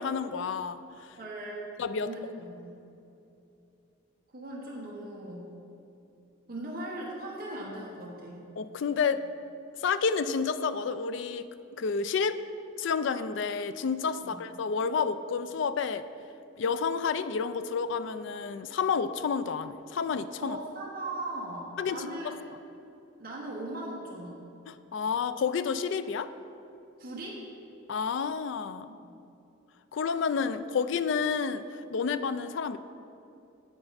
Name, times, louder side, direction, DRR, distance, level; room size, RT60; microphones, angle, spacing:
voice 1, 0.0-1.2 1.8-2.1 8.6-9.2 9.8-11.5 11.8-12.4 12.8-16.0 16.6-20.6 21.8-22.3 24.7-26.3 27.9-28.9 29.9-31.6 31.9-32.8, left 5 dB, 65° left, 12 dB, 0.3 m, -30 dB
voice 2, 1.2-2.7 4.3-5.5 6.5-8.4 14.2-14.4 20.4-22.3 23.2-24.4 27.0-27.4 28.8-29.1, right 1 dB, 45° right, -4 dB, 1.2 m, -39 dB
9.8 x 7.7 x 4.1 m, 2.8 s
head